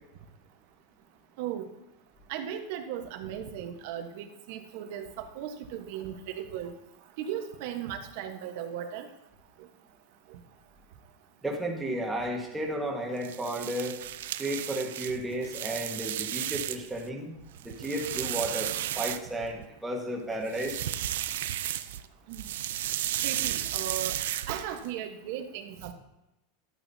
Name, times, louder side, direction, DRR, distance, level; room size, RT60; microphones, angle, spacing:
voice 1, 1.4-1.7 2.3-6.7 7.2-9.1 9.6-9.7 10.3-10.4 22.3-22.4 23.2-24.2 24.5-25.9, right 9 dB, 55° right, 6 dB, 1.2 m, -37 dB
voice 2, 11.4-14.0 14.4-17.3 17.6-20.8, right 1 dB, 5° right, -1 dB, 1.5 m, -33 dB
sound 1, 13.2-17.0 17.4-19.7 20.4-22.0 22.3-24.9, right 12 dB, 80° right, 0.5 m, -33 dB
12.5 x 9.1 x 2.8 m, 0.93 s
supercardioid pair, 165°, 0 cm